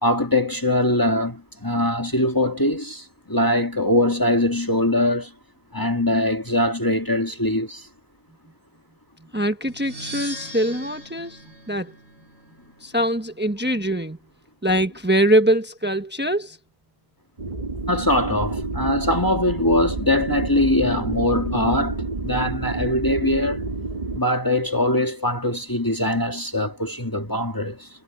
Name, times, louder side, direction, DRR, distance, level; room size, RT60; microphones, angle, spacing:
voice 1, 0.0-5.3 5.7-7.9 17.9-23.6 24.1-27.9, left 1 dB, 20° left, 1.8 m, -22 dB
voice 2, 9.3-11.4 11.7-12.0 12.8-14.2 14.6-16.6, right 1 dB, 10° right, 1.2 m, -22 dB
sound 1, 9.7-12.5, right 1 dB, 85° right, 6.9 m, -39 dB
sound 2, 17.4-24.2, right 3 dB, 40° right, 2.1 m, -29 dB
omnidirectional pair, 1.1 m